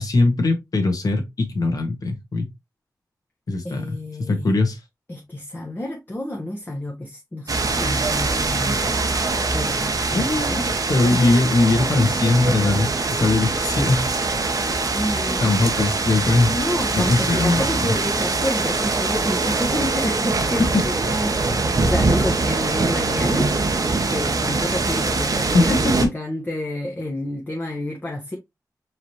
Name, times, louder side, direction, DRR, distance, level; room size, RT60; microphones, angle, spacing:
voice 1, 0.0-2.5 3.5-4.8 10.1-10.6 10.9-14.3 15.4-16.5 16.9-17.9 20.7-20.8 25.5-26.1, left 2 dB, 60° left, 1.5 m, -20 dB
voice 2, 3.6-4.6 5.1-9.0 9.5-11.4 14.9-15.9 16.5-23.5 24.1-28.4, left 1 dB, 25° left, 1.0 m, -30 dB
sound 1, 7.5-26.1, right 3 dB, 60° right, 0.9 m, -23 dB
4.7 x 3.3 x 2.9 m
cardioid pair, 65°, 7 cm